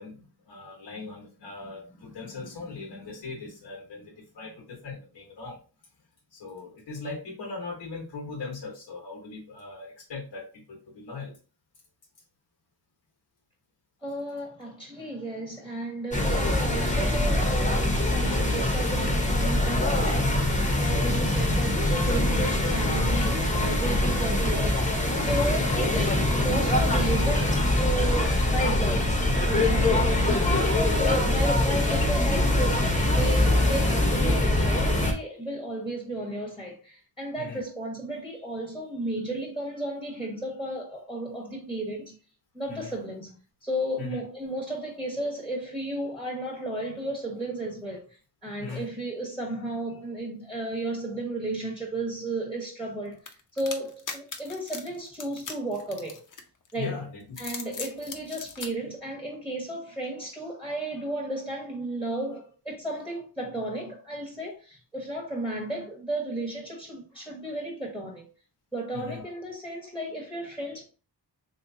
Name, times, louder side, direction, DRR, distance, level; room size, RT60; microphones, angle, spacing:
voice 1, 0.0-5.6 6.3-11.3 20.1-20.2 20.9-21.2 29.7-30.0 30.5-30.7 37.4-37.6 42.7-42.9 44.0-44.2 48.6-48.9 56.8-57.4 68.9-69.2, left 4 dB, 90° left, 1.2 m, -39 dB
voice 2, 14.0-29.1 29.5-30.5 31.0-42.2 42.5-48.0 48.4-53.2 53.5-56.2 56.7-57.0 57.4-68.2 68.7-70.8, right 1 dB, ahead, 1.1 m, -33 dB
sound 1, 16.1-35.1, left 1 dB, 20° left, 0.9 m, -23 dB
sound 2, 53.3-56.7 57.2-58.7, left 5 dB, 50° left, 0.7 m, -39 dB
3.1 x 3.0 x 2.6 m
cardioid pair, 70°, 42 cm